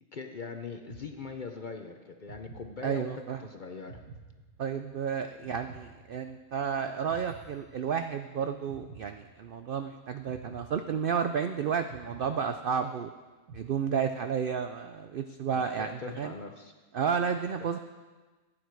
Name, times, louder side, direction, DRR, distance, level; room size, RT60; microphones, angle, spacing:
voice 1, 0.1-4.0 5.4-5.5 15.5-16.7, left 4 dB, 45° left, 5 dB, 0.7 m, -41 dB
sound 1, 0.9-1.7 2.3-3.3 3.9-5.0 5.5-6.7 7.1-8.3 8.7-9.7 10.3-11.4 11.9-13.1 13.5-14.3, right 4 dB, 85° right, 2.0 m, -51 dB
voice 2, 2.8-3.4 4.6-13.1 13.5-16.3 16.9-17.8, right 7 dB, 70° right, 8 dB, 0.5 m, -31 dB
15.5 x 9.0 x 4.7 m, 1.3 s
omnidirectional pair, 1.5 m